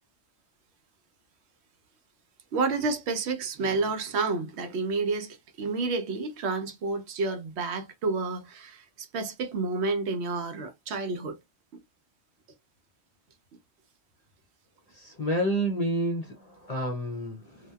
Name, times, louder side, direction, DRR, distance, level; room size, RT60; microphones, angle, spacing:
voice 1, 2.5-11.4, right 3 dB, 70° right, 0.8 m, -30 dB
voice 2, 14.9-17.7, right 1 dB, 45° left, 0.5 m, -30 dB
2.7 x 2.1 x 2.2 m
omnidirectional pair, 1.2 m